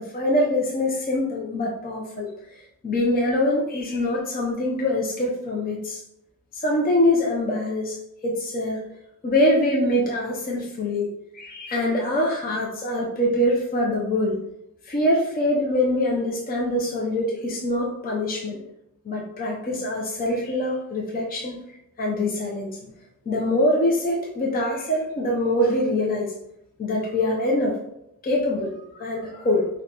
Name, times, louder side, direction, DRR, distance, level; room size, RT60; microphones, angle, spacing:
voice 1, 0.0-6.0 6.5-8.8 9.2-14.4 14.9-18.6 19.0-21.6 22.0-22.9 23.3-26.3 26.8-27.8 28.2-29.7, left 1 dB, 30° left, -2 dB, 0.5 m, -24 dB
3.2 x 2.2 x 3.8 m, 0.80 s
wide cardioid pair, 140°, 32 cm